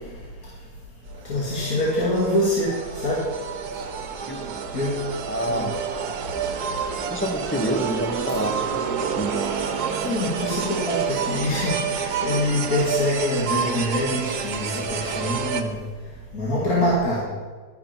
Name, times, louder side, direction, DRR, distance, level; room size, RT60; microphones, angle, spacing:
sound 1, 1.1-15.6, right 6 dB, 70° right, 1.4 m, -29 dB
voice 1, 1.3-2.7 3.0-3.2 4.7-5.0 5.5-5.7 10.0-15.8 16.3-17.2, left 1 dB, 55° left, -6 dB, 2.7 m, -24 dB
voice 2, 5.3-5.7 7.0-9.3, equal, 10° left, 3 dB, 0.7 m, -28 dB
12.0 x 11.0 x 4.5 m, 1.4 s
omnidirectional pair, 1.8 m